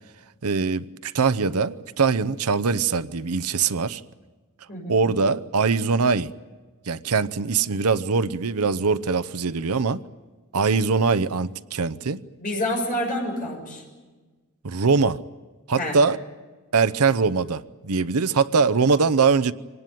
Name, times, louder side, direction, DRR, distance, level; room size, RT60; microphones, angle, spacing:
voice 1, 0.4-4.0 4.9-6.3 6.9-10.0 10.5-12.2 14.6-15.2 15.7-16.2 16.7-19.5, right 5 dB, 85° right, 14 dB, 0.8 m, -22 dB
voice 2, 4.7-5.1 12.4-13.8 15.8-16.0, left 1 dB, 40° left, 1 dB, 6.7 m, -28 dB
26.0 x 19.0 x 9.3 m, 1.3 s
head